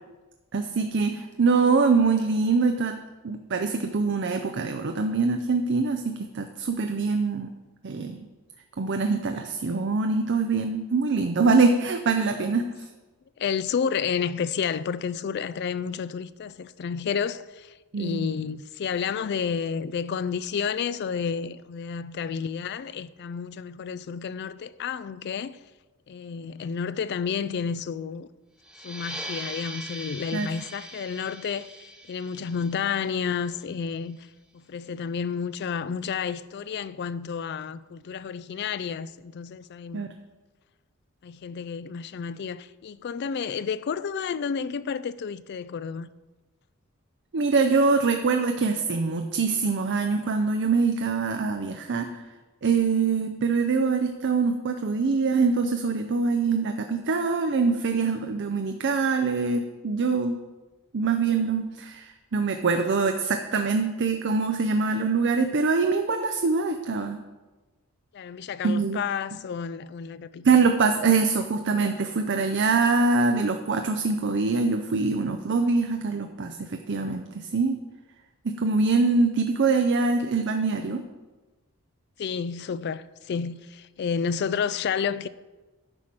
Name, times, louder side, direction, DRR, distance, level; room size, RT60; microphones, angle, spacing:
voice 1, 0.5-3.0 3.2-7.5 7.8-8.2 8.8-12.9 17.9-18.3 30.3-30.5 39.9-40.1 47.3-52.1 52.6-60.4 60.9-67.2 68.6-69.0 70.4-77.8 78.4-81.0, right 4 dB, 50° right, 0.5 m, -24 dB
voice 2, 13.4-25.6 26.1-28.3 28.8-34.2 34.5-40.1 41.2-46.1 68.1-70.5 82.2-85.3, left 6 dB, 50° left, 0.3 m, -31 dB
sound 1, 28.6-33.9, right 1 dB, 5° right, 0.8 m, -41 dB
9.8 x 4.8 x 5.9 m
head